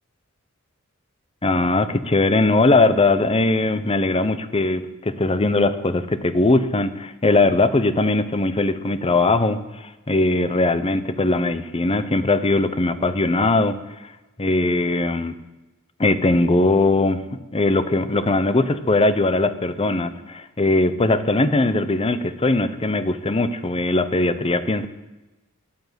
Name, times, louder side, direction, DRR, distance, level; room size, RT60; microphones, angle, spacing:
voice 1, 1.4-9.6 10.1-13.8 14.4-15.4 16.0-24.9, left 2 dB, 25° left, 11 dB, 0.7 m, -20 dB
9.5 x 9.1 x 8.2 m, 1.1 s
head